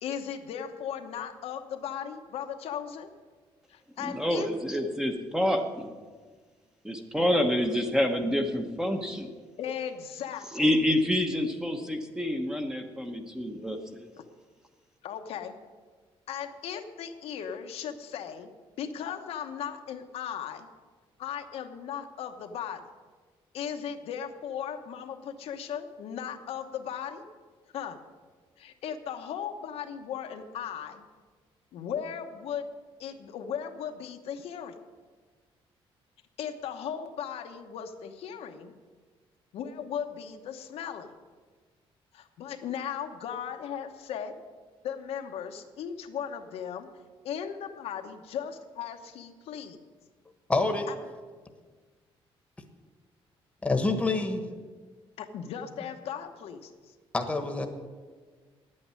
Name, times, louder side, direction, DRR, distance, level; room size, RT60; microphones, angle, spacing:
voice 1, 0.0-3.1 3.7-4.5 9.6-10.7 15.0-15.5 16.3-18.5 18.8-20.7 21.2-22.8 23.5-27.2 27.7-28.0 28.6-31.0 31.7-32.7 33.0-34.8 36.4-38.7 39.5-41.1 42.1-44.3 44.8-46.9 47.2-49.8 50.9-51.0 55.2-56.9, left 8 dB, 80° left, 5 dB, 1.1 m, -37 dB
voice 2, 4.0-5.9 6.8-9.3 10.5-14.1, left 1 dB, 5° right, 5 dB, 1.0 m, -28 dB
voice 3, 50.5-50.9 53.6-54.4 57.1-57.7, left 3 dB, 10° left, 5 dB, 1.3 m, -26 dB
9.8 x 8.7 x 9.5 m, 1.4 s
cardioid pair, 150°, 10 cm